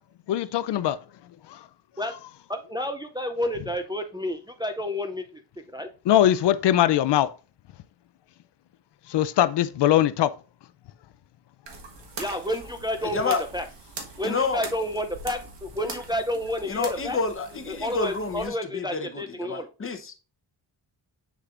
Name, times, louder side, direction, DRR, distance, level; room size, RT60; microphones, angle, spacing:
voice 1, 0.3-1.0 6.1-7.3 9.1-10.3, left 12 dB, 75° left, 0.5 m, -21 dB
voice 2, 2.5-5.4 5.7-5.9 12.2-13.6 14.2-17.2 17.7-19.7, left 1 dB, 10° right, 0.4 m, -30 dB
sound 1, 11.7-18.5, right 4 dB, 85° right, 1.5 m, -41 dB
voice 3, 13.0-13.4 14.2-14.6 16.7-20.1, left 4 dB, 30° left, 0.9 m, -29 dB
7.5 x 6.6 x 2.5 m
wide cardioid pair, 160°, 42 cm